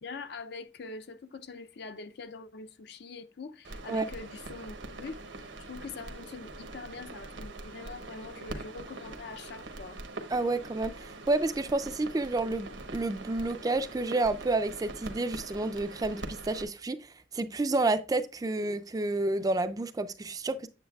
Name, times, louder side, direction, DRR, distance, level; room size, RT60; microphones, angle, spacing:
voice 1, 0.0-10.0, left 4 dB, 60° left, 0.5 m, -44 dB
sound 1, 3.6-16.6, right 2 dB, 85° right, 1.0 m, -43 dB
voice 2, 10.3-17.0 17.3-20.7, right 2 dB, 20° right, 0.3 m, -30 dB
8.6 x 7.4 x 2.3 m
head